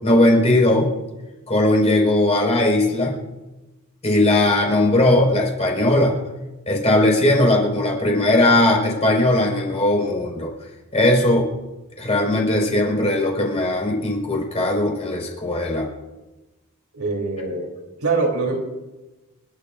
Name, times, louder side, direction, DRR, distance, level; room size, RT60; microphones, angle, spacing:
voice 1, 0.0-0.9 1.5-3.2 4.0-6.1 6.7-10.5 10.9-11.5 12.0-15.9, left 1 dB, 30° left, -2 dB, 5.1 m, -18 dB
voice 2, 16.9-17.7 18.0-18.6, right 3 dB, 75° right, 0 dB, 3.4 m, -23 dB
29.5 x 12.0 x 2.6 m, 1.1 s
head